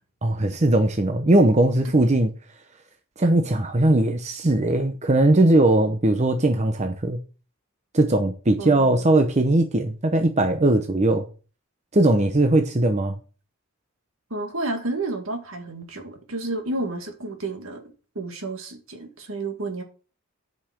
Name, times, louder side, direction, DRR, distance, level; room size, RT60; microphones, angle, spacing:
voice 1, 0.2-2.3 3.2-7.2 7.9-11.3 11.9-13.2, right 1 dB, 30° right, 0.8 m, -19 dB
voice 2, 8.6-9.0 14.3-17.8 18.2-19.8, right 2 dB, 70° right, 2.0 m, -31 dB
8.8 x 5.5 x 6.3 m
head